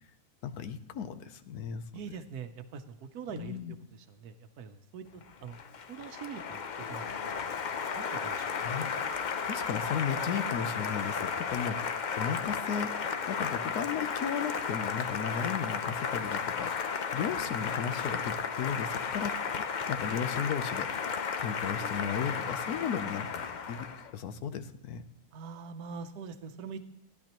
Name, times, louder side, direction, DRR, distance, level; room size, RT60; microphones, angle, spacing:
voice 1, 0.4-2.1 3.3-3.8 8.6-9.0 9.2-12.9 13.3-19.4 19.9-23.9 24.1-25.0, left 7 dB, 85° left, 10 dB, 1.3 m, -35 dB
voice 2, 1.9-3.6 4.1-5.6 5.9-7.1 7.4-7.5 8.0-8.4 25.3-26.8, right 6 dB, 85° right, 9 dB, 1.3 m, -43 dB
Applause, 5.2-24.1, left 6 dB, 65° left, 0.4 m, -34 dB
15.5 x 11.0 x 3.0 m, 0.83 s
omnidirectional pair, 1.6 m